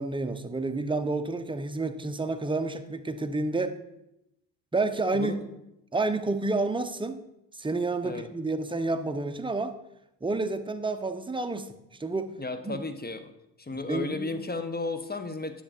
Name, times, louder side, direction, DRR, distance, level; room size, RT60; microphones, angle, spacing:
voice 1, 0.0-3.8 4.7-5.4 5.9-7.2 7.6-9.7 10.2-12.3 12.6-12.8 13.7-14.4, right 3 dB, 10° right, 8 dB, 0.9 m, -30 dB
voice 2, 12.4-13.3 13.6-15.6, left 3 dB, 20° left, 9 dB, 1.2 m, -34 dB
10.0 x 7.2 x 4.3 m, 0.84 s
hypercardioid pair, 45°, 48 cm